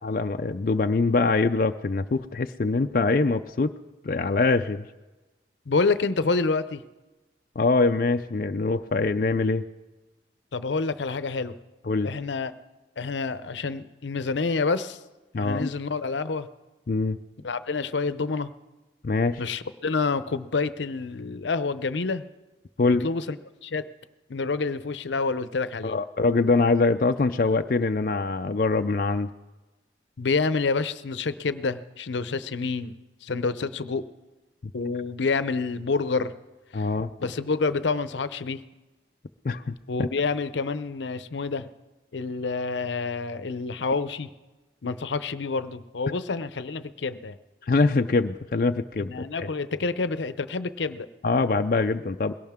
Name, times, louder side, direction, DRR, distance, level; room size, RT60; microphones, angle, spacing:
voice 1, 0.0-3.7 4.0-4.9 7.6-9.6 11.9-12.1 15.3-15.7 16.9-17.2 19.0-19.4 22.8-23.1 25.8-29.3 36.7-37.1 39.4-39.7 40.0-40.1 47.7-49.5 51.2-52.3, left 3 dB, 50° left, 6 dB, 0.4 m, -23 dB
voice 2, 5.7-6.8 10.5-11.5 12.0-12.5 13.0-15.0 15.4-16.5 17.4-18.5 19.4-22.2 22.8-23.4 23.6-23.8 24.3-26.0 30.2-32.9 33.2-34.1 34.7-36.3 36.7-36.9 37.2-38.6 39.9-41.7 42.1-44.3 44.8-47.4 49.0-51.1, left 4 dB, 85° left, 13 dB, 0.7 m, -28 dB
21.0 x 17.5 x 3.6 m, 1.1 s
head